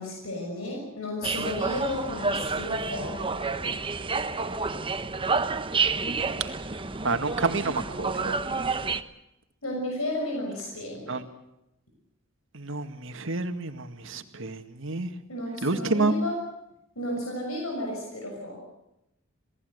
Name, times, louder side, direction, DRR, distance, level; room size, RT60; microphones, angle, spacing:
voice 1, 0.0-3.4 9.6-11.2 15.3-16.4 16.9-18.6, left 1 dB, 90° left, 0 dB, 6.4 m, -33 dB
sound 1, 1.2-9.0, right 4 dB, 25° right, 1.0 m, -29 dB
voice 2, 7.0-8.4 11.1-11.2 12.5-15.1 15.6-16.1, right 3 dB, 65° right, 8 dB, 2.0 m, -29 dB
27.5 x 18.5 x 8.1 m, 0.87 s
head